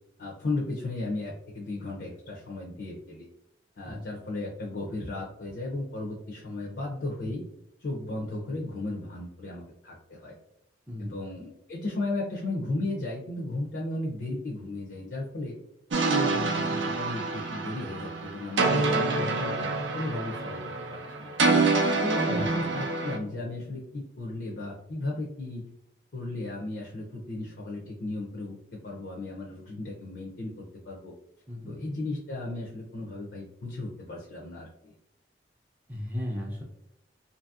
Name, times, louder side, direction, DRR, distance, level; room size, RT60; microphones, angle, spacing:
voice 1, 0.2-3.3 3.8-7.4 7.8-10.4 11.0-15.5 16.1-21.3 22.0-25.7 26.1-28.6 28.8-31.1 31.7-34.9, left 2 dB, 60° left, -2 dB, 0.5 m, -35 dB
sound 1, 15.9-23.2, right 3 dB, 85° right, 0.5 m, -27 dB
voice 2, 22.3-22.6 31.5-31.8 35.9-36.6, left 1 dB, 10° right, -3 dB, 0.4 m, -35 dB
2.8 x 2.6 x 2.3 m, 0.78 s
head